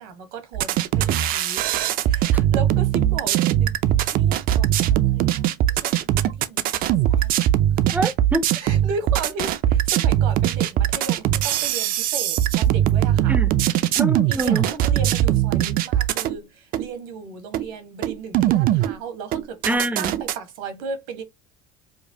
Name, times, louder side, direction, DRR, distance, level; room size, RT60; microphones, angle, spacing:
voice 1, 0.0-1.7 2.0-3.7 4.1-7.3 7.9-8.0 8.6-13.4 14.3-19.6 20.0-21.2, right 4 dB, 85° right, 1.2 m, -36 dB
sound 1, 0.5-16.4 16.7-16.8 17.5-17.6 18.0-19.0 19.3-20.4, right 12 dB, 55° right, 0.5 m, -21 dB
voice 2, 7.9-8.5 13.3-13.5 14.0-14.7 19.6-20.2, right 2 dB, 10° right, 0.6 m, -25 dB
5.1 x 2.1 x 2.7 m
supercardioid pair, 95°, 17 cm